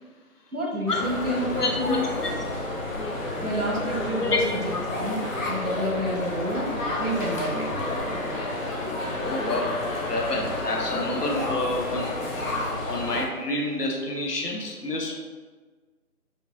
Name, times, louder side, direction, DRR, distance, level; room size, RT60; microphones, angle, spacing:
voice 1, 0.5-2.3 3.4-5.2 5.5-6.7 7.0-7.7, equal, 75° right, -2 dB, 1.4 m, -29 dB
sound 1, 0.9-13.3, left 2 dB, 60° left, 0.9 m, -30 dB
voice 2, 1.5-2.3 4.2-4.4 4.7-4.8 9.2-12.3 12.8-15.2, left 2 dB, 85° left, 1 dB, 1.0 m, -28 dB
5.4 x 2.6 x 2.6 m, 1.4 s
figure-of-eight pair, 165°, 45 cm